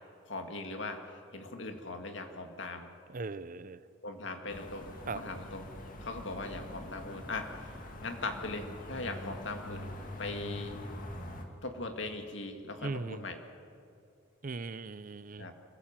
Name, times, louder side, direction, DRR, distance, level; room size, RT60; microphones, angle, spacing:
voice 1, 0.3-1.0 1.3-2.9 4.0-5.6 6.0-7.5 8.0-9.9 10.2-10.8 11.6-13.4 15.4-15.5, left 2 dB, 65° left, 5 dB, 2.1 m, -39 dB
voice 2, 3.1-3.9 5.1-5.2 12.8-13.3 14.4-15.5, right 3 dB, 45° right, 16 dB, 0.5 m, -39 dB
sound 1, 4.5-11.5, left 1 dB, 45° left, 2.1 m, -44 dB
25.0 x 16.0 x 7.5 m, 2.4 s
head